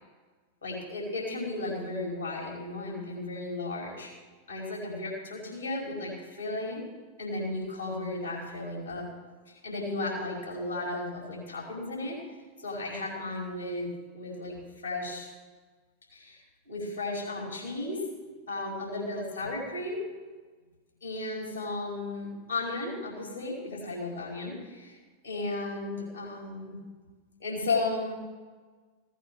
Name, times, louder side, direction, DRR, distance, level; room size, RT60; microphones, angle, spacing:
voice 1, 0.6-4.1 4.5-6.8 7.2-9.0 9.5-12.2 12.6-14.5 14.8-15.3 16.1-18.0 18.5-20.0 21.0-25.0 25.2-26.8 27.4-28.2, left 2 dB, 80° left, -2 dB, 4.8 m, -34 dB
16.0 x 9.3 x 7.3 m, 1.4 s
figure-of-eight pair, 90°, 0 cm